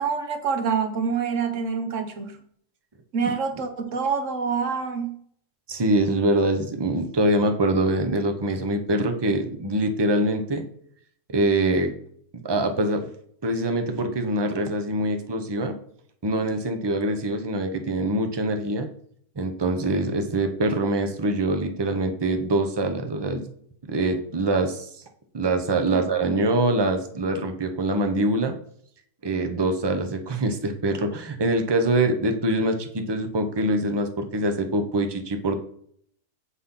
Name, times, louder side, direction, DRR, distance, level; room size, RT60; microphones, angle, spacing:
voice 1, 0.0-2.4 3.1-5.2 25.9-26.4, right 6 dB, 55° right, 7 dB, 1.3 m, -27 dB
voice 2, 5.7-10.6 11.3-11.9 12.4-13.1 13.4-15.8 16.2-18.9 19.4-23.5 23.8-24.9 25.3-28.6 29.2-35.5, right 1 dB, 25° right, 6 dB, 0.6 m, -24 dB
8.3 x 3.9 x 5.6 m, 0.63 s
omnidirectional pair, 1.7 m